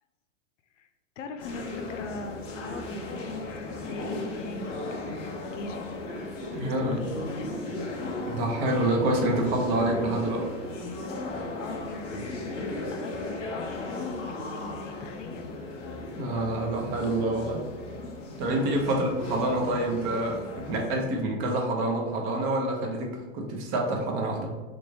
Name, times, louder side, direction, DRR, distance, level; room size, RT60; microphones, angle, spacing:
voice 1, 1.2-5.8 6.6-7.6 11.6-15.4, left 3 dB, 70° left, 8 dB, 0.5 m, -41 dB
sound 1, 1.4-21.0, left 2 dB, 15° left, 0.3 m, -36 dB
voice 2, 6.5-7.0 8.3-10.5 16.2-17.6 18.4-24.5, right 1 dB, 35° right, 1 dB, 0.8 m, -27 dB
3.2 x 2.6 x 3.4 m, 1.3 s
hypercardioid pair, 115°, 38 cm